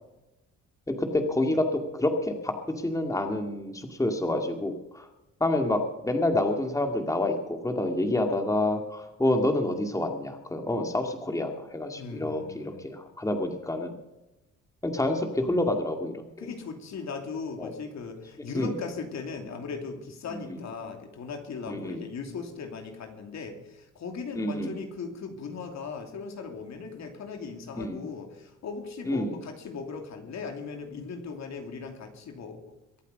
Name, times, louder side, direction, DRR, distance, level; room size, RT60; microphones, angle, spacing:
voice 1, 0.9-5.1 5.4-14.0 14.8-16.5 17.6-17.7 18.5-18.7 20.3-20.6 21.7-22.0 24.4-24.8 27.8-28.0 29.1-29.3, left 1 dB, 10° left, 4 dB, 2.2 m, -28 dB
voice 2, 12.0-12.9 16.4-32.7, left 5 dB, 65° left, 4 dB, 2.9 m, -38 dB
23.0 x 8.3 x 5.4 m, 0.96 s
cardioid pair, 90°, 30 cm